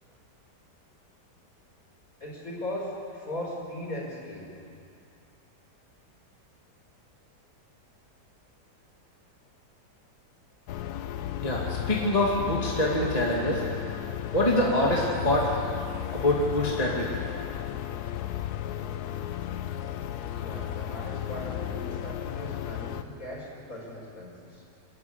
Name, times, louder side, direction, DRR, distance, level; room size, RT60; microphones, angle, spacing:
voice 1, 2.2-4.5 20.4-24.6, left 1 dB, 50° left, -2 dB, 5.6 m, -38 dB
sound 1, 10.7-23.0, left 11 dB, 70° left, 1.2 m, -34 dB
voice 2, 11.4-13.6 14.3-15.5 16.1-17.1, left 1 dB, 20° left, -3 dB, 2.5 m, -25 dB
27.5 x 13.0 x 9.7 m, 2.5 s
omnidirectional pair, 1.8 m